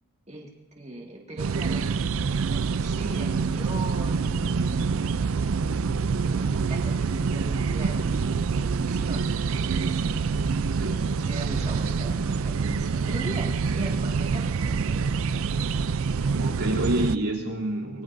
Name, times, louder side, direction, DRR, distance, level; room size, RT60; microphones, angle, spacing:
voice 1, 0.8-1.9 2.4-5.0 6.2-10.0 11.2-15.0, right 1 dB, 30° right, -2 dB, 2.0 m, -39 dB
sound 1, 1.4-17.2, right 5 dB, 60° right, 0.4 m, -26 dB
voice 2, 10.8-11.2 16.4-18.0, right 1 dB, 80° right, -4 dB, 3.1 m, -28 dB
24.5 x 21.5 x 2.7 m, 1.1 s
head